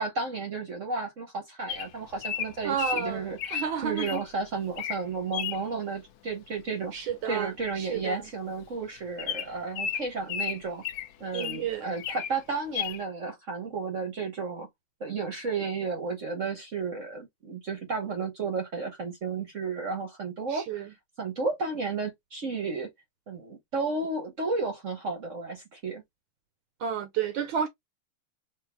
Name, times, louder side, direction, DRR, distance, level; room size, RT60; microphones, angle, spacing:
voice 1, 0.0-6.9 7.2-10.8 11.2-14.7 15.0-20.8 21.2-22.9 23.3-26.0, right 4 dB, 45° right, 1.1 m, -33 dB
Bird vocalization bird call bird song, 1.7-4.2 4.7-5.0 5.3-5.6 7.1-7.3 7.6-7.7 8.0-8.1 8.6-8.7 9.2-11.6 12.0-12.3 12.7-13.0, left 9 dB, 80° left, 0.8 m, -33 dB
voice 2, 2.6-4.2 6.9-8.3 11.3-11.9 20.5-20.9 26.8-27.7, right 8 dB, 75° right, 1.4 m, -31 dB
4.5 x 2.7 x 2.9 m
omnidirectional pair, 2.4 m